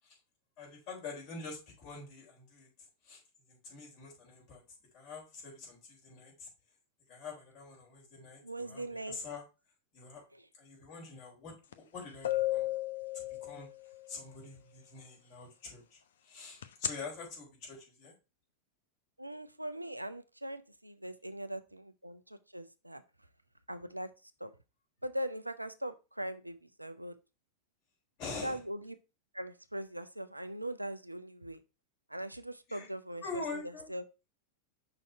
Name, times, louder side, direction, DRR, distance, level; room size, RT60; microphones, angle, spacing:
voice 1, 0.6-2.7 3.0-3.2 3.5-4.6 4.9-6.5 7.1-9.4 9.9-10.2 10.5-12.7 13.1-13.7 14.1-18.1 28.2-28.6 32.7-32.9 33.2-33.9, left 4 dB, 45° left, -2 dB, 3.8 m, -45 dB
voice 2, 8.4-9.2 19.2-23.0 23.7-24.1 24.4-24.5 25.0-27.1 28.4-29.0 29.3-31.6 32.1-34.0, right 1 dB, 85° right, 11 dB, 0.4 m, -40 dB
sound 1, 11.7-11.8 12.2-14.0 16.6-16.9, left 14 dB, 60° left, 0.5 m, -33 dB
5.7 x 4.2 x 4.3 m, 0.29 s
figure-of-eight pair, 90°, 0 cm